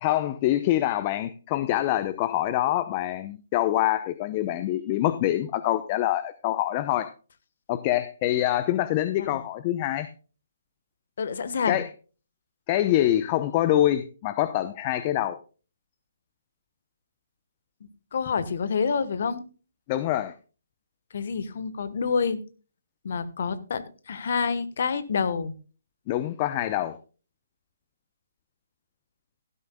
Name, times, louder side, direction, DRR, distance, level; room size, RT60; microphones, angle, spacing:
voice 1, 0.0-7.1 7.7-10.1 11.7-11.9 12.7-15.4 19.9-20.3 26.1-27.0, left 13 dB, 35° left, 0.7 m, -25 dB
voice 2, 11.2-11.8 18.1-19.4 21.1-22.4 23.0-25.5, left 5 dB, 60° left, 1.2 m, -27 dB
16.0 x 12.5 x 2.2 m
figure-of-eight pair, 140°, 0 cm